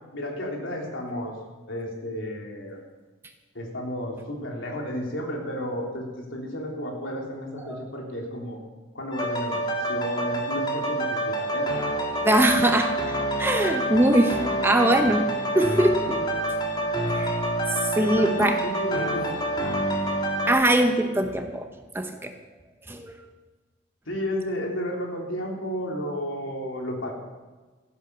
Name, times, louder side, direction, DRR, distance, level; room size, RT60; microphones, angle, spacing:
voice 1, 0.1-1.4 1.7-2.8 3.5-8.6 8.9-12.1 16.0-16.1 17.9-19.3 19.6-19.7 24.0-27.1, equal, 85° left, 0 dB, 3.5 m, -32 dB
sound 1, 9.1-20.5, right 1 dB, 20° left, 2.0 m, -27 dB
voice 2, 12.2-15.2 15.5-16.0 17.1-17.4 17.8-18.6 20.5-21.7 21.9-22.3 22.9-23.2, right 1 dB, 10° right, 5 dB, 0.9 m, -22 dB
14.0 x 11.0 x 6.9 m, 1.3 s
head